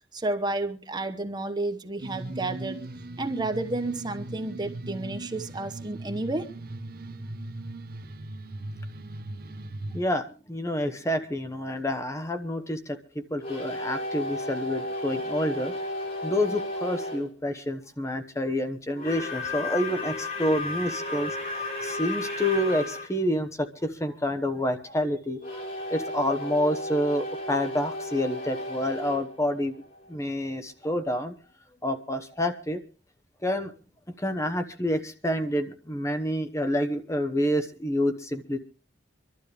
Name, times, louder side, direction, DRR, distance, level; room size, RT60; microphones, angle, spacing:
voice 1, 0.1-2.8 3.2-6.5, right 2 dB, 25° right, 1.0 m, -31 dB
sound 1, 2.0-10.0, right 2 dB, 55° right, 1.0 m, -38 dB
voice 2, 9.9-15.7 16.2-25.6 25.9-29.8 30.1-31.3 31.8-32.8 33.4-33.7 34.2-38.6, left 1 dB, 15° left, 1.0 m, -28 dB
sound 2, 13.4-17.3 18.9-23.1 25.4-30.3, left 1 dB, 50° left, 3.5 m, -34 dB
25.0 x 12.0 x 3.4 m
head